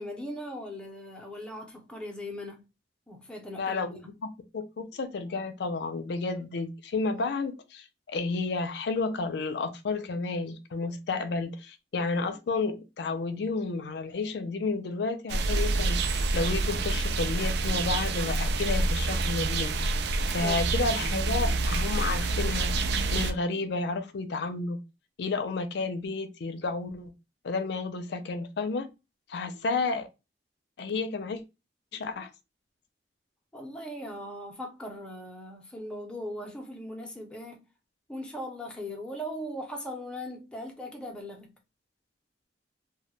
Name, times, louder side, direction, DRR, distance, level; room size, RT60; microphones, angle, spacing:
voice 1, 0.0-2.6 3.1-4.1 20.4-20.7 33.5-37.6 38.1-41.5, equal, 5° left, 0.5 m, -39 dB
voice 2, 3.6-4.0 4.5-19.7 20.3-22.7 23.1-24.8 25.2-27.1 27.4-28.9 29.3-30.1 30.8-31.4 31.9-32.3, left 3 dB, 70° left, 0.4 m, -31 dB
sound 1, 15.3-23.3, right 2 dB, 65° right, 0.4 m, -27 dB
2.2 x 2.1 x 3.0 m
head